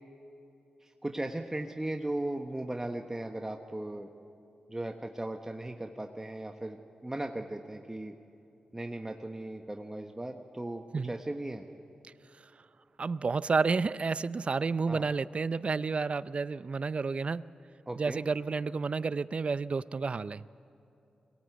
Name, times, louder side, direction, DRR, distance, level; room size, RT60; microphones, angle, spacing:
voice 1, 1.0-4.1 4.7-8.1 8.7-11.6 14.9-15.1 17.9-18.2, right 1 dB, 20° right, 4 dB, 1.2 m, -37 dB
voice 2, 13.0-17.4 18.0-20.4, right 4 dB, 50° right, 17 dB, 0.5 m, -30 dB
22.5 x 17.5 x 8.1 m, 2.7 s
cardioid pair, 50°, 3 cm